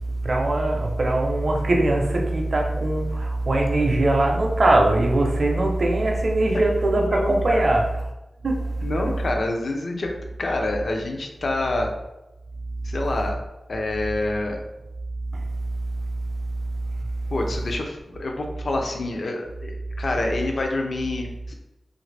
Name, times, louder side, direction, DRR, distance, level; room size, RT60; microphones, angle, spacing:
voice 1, 0.2-8.1 8.4-9.1 15.3-15.8 16.1-16.2 16.8-16.9, right 2 dB, 45° right, 1 dB, 0.6 m, -21 dB
voice 2, 6.9-7.6 8.8-10.1 10.4-11.9 12.8-13.4 13.7-14.6 17.3-21.5, left 2 dB, 55° left, 2 dB, 0.5 m, -27 dB
3.2 x 2.5 x 3.2 m, 0.95 s
wide cardioid pair, 120°, 0 cm